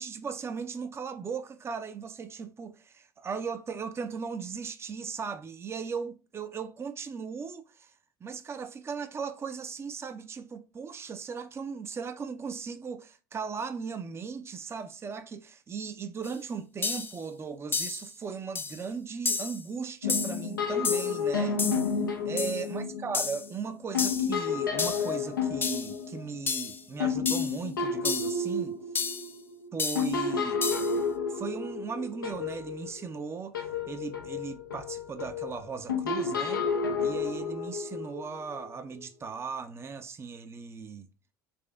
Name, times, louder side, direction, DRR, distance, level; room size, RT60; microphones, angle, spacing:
voice 1, 0.0-7.9 8.2-21.6 22.3-28.8 29.7-30.6 31.3-33.6 33.9-36.6 37.0-41.1, right 5 dB, 25° right, 0.6 m, -37 dB
sound 1, 16.2-16.3 16.8-17.2 17.7-18.1 18.5-18.8 19.2-19.6 20.1-20.4 20.8-21.2 21.6-21.9 22.4-22.6 23.1-23.5 24.0-24.3 24.8-25.1 25.6-25.9 26.5-26.8 27.3-27.6 28.0-28.4 28.9-29.3 29.8-30.1 30.6-30.9, left 4 dB, 20° left, 0.5 m, -31 dB
sound 2, 20.0-23.5 23.9-33.3 33.5-38.7, left 5 dB, 85° left, 0.7 m, -31 dB
4.2 x 2.8 x 3.4 m
hypercardioid pair, 75°, 11 cm